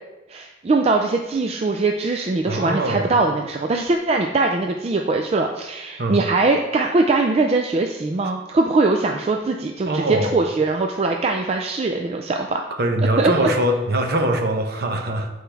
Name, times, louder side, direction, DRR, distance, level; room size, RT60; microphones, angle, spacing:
voice 1, 0.3-12.6 13.2-13.3, right 3 dB, 35° right, 3 dB, 0.3 m, -21 dB
voice 2, 2.5-3.1 6.0-6.2 9.9-10.4 12.7-15.3, right 1 dB, 55° right, 4 dB, 0.8 m, -22 dB
8.0 x 4.5 x 3.4 m, 1.0 s
head